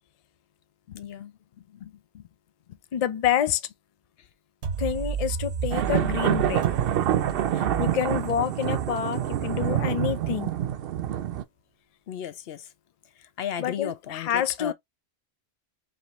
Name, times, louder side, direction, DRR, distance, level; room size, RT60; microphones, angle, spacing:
voice 1, 0.9-2.2 12.1-12.7 13.2-14.7, left 9 dB, 70° left, 0.8 m, -36 dB
voice 2, 2.9-3.6 4.8-6.6 7.5-10.5 13.6-14.7, left 9 dB, 50° left, 0.5 m, -27 dB
sound 1, 4.6-10.3, right 7 dB, 90° right, 1.2 m, -34 dB
sound 2, 5.7-11.4, right 11 dB, 65° right, 0.7 m, -26 dB
5.1 x 2.6 x 2.9 m
omnidirectional pair, 1.1 m